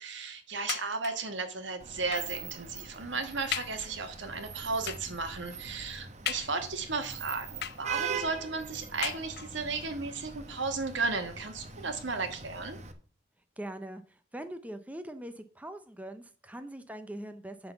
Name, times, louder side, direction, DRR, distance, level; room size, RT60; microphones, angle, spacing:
voice 1, 0.0-12.8, right 4 dB, 75° right, 7 dB, 1.4 m, -34 dB
sound 1, 0.7-1.4 2.1-2.4 3.0-3.1 3.5-3.9 4.9-5.2 6.3-6.9 7.6-8.2 9.0-9.7 10.5-10.6 10.9-11.0, left 10 dB, 60° left, 0.5 m, -38 dB
Vehicle horn car horn honking / Traffic noise roadway noise, 1.8-12.9, right 6 dB, 35° right, 0.9 m, -42 dB
voice 2, 13.6-17.7, right 1 dB, 10° right, 9 dB, 0.5 m, -42 dB
9.4 x 3.9 x 6.8 m, 0.42 s
head